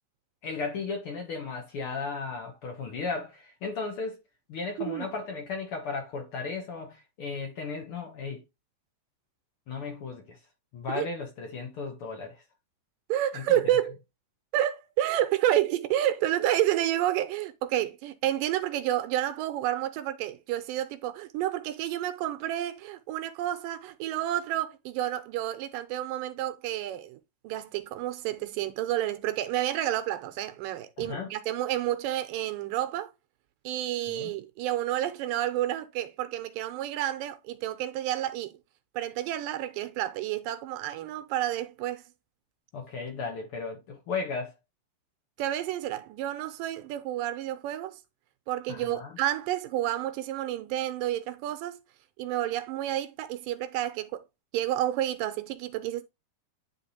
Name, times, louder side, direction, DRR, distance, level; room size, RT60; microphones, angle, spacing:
voice 1, 0.4-4.2 4.5-8.4 9.7-10.4 10.7-12.4 13.3-13.8 31.0-31.3 34.1-34.3 42.7-44.5 48.7-49.2, left 4 dB, 65° left, 1.4 m, -35 dB
voice 2, 13.1-14.0 14.5-27.2 27.4-33.1 33.7-38.5 39.0-42.0 45.4-48.0 48.5-51.8 52.2-54.2 54.5-56.0, right 13 dB, 80° right, 2.2 m, -30 dB
10.0 x 3.6 x 2.7 m
omnidirectional pair, 4.0 m